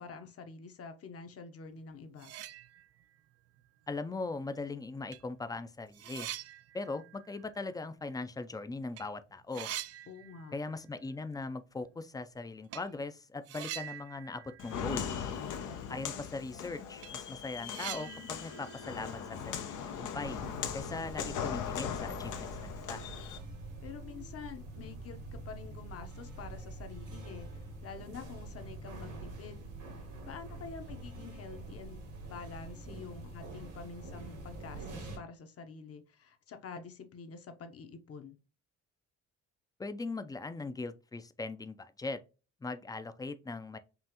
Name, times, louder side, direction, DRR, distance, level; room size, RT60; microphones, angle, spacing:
voice 1, 0.0-2.3 10.1-10.5 15.7-16.2 23.8-29.6 30.2-38.4, left 5 dB, 50° left, 0.9 m, -47 dB
sound 1, 1.8-1.9 2.1-3.2 3.6-3.7 4.6-4.7 5.1-8.6 8.8-9.1 9.3-10.9 11.1-11.2 12.7-12.9 13.5-15.6 15.9-16.0 16.4-16.5 16.8-20.0, right 12 dB, 55° right, 0.4 m, -46 dB
voice 2, 3.9-6.3 6.7-9.7 10.5-15.0 15.9-20.4 20.7-23.0 39.8-42.2 42.6-43.8, left 3 dB, 10° left, 0.4 m, -40 dB
Walk footsteps, 14.6-23.4, left 8 dB, 80° left, 0.8 m, -39 dB
sound 2, 20.2-35.2, right 2 dB, 85° right, 2.0 m, -45 dB
5.5 x 2.5 x 2.9 m
cardioid pair, 90°, 30 cm